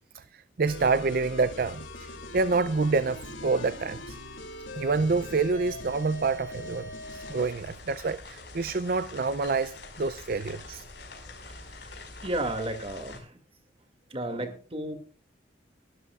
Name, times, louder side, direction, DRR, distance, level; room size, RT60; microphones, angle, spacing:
voice 1, 0.1-4.2 4.8-10.8, right 4 dB, 50° right, 0.5 m, -28 dB
sound 1, 0.7-7.6, left 2 dB, 90° left, 3.0 m, -41 dB
sound 2, 7.0-13.2, left 3 dB, 60° left, 5.3 m, -45 dB
voice 2, 12.2-13.4 14.1-14.9, right 1 dB, 30° right, 2.3 m, -33 dB
23.0 x 12.5 x 2.4 m
head